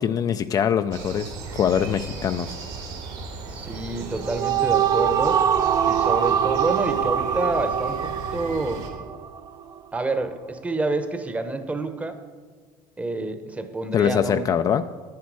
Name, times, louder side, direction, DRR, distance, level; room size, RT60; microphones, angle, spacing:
voice 1, 0.0-2.6 13.9-14.8, left 8 dB, 35° left, 9 dB, 0.4 m, -23 dB
sound 1, 0.9-8.9, right 4 dB, 70° right, 2.5 m, -37 dB
voice 2, 3.5-5.4 5.9-8.8 9.9-12.2 13.0-14.5, right 2 dB, 15° right, 9 dB, 0.9 m, -28 dB
sound 2, 4.0-9.5, right 9 dB, 35° right, 0.5 m, -23 dB
10.5 x 9.4 x 4.7 m, 1.5 s
supercardioid pair, 115°, 11 cm